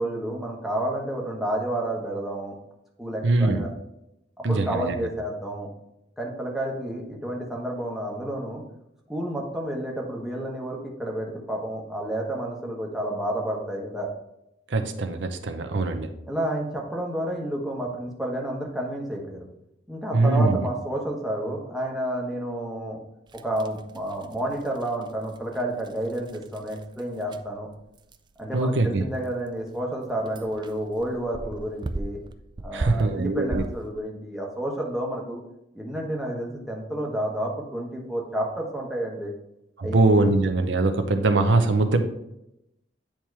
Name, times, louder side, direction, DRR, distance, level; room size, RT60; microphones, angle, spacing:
voice 1, 0.0-2.5 3.0-3.7 4.5-5.7 6.2-8.6 9.1-14.1 16.3-19.5 19.9-23.0 23.4-27.7 28.4-32.2 32.6-35.4 35.7-39.3 39.8-40.3, right 1 dB, ahead, -2 dB, 1.2 m, -30 dB
voice 2, 3.2-3.6 4.4-5.0 14.7-16.1 20.1-20.6 28.5-29.0 32.7-33.6 39.8-42.0, right 2 dB, 85° right, 7 dB, 0.7 m, -22 dB
sound 1, 23.3-34.0, right 2 dB, 25° right, 0.3 m, -39 dB
8.7 x 3.0 x 4.6 m, 0.84 s
head